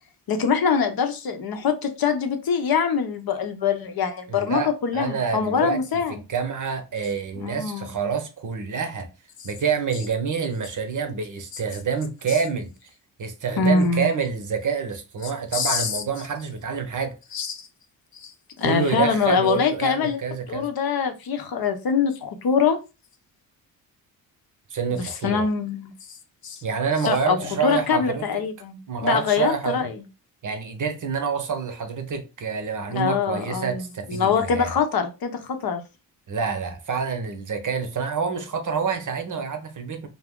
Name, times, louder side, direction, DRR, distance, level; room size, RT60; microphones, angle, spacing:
voice 1, 0.3-6.2 7.4-7.9 11.5-11.6 13.6-14.1 15.5-16.0 17.3-17.7 18.1-18.3 18.6-20.2 20.5-22.8 24.9-25.9 26.4-26.6 27.0-30.0 32.9-33.8 34.1-35.8, left 6 dB, 55° left, 0.7 m, -24 dB
voice 2, 4.3-5.8 6.1-9.1 9.4-12.7 13.2-17.2 18.6-20.7 24.7-25.5 26.6-28.4 28.9-29.9 30.4-34.7 36.3-40.1, right 6 dB, 45° right, 0.8 m, -27 dB
2.4 x 2.0 x 3.6 m
supercardioid pair, 50°, 45 cm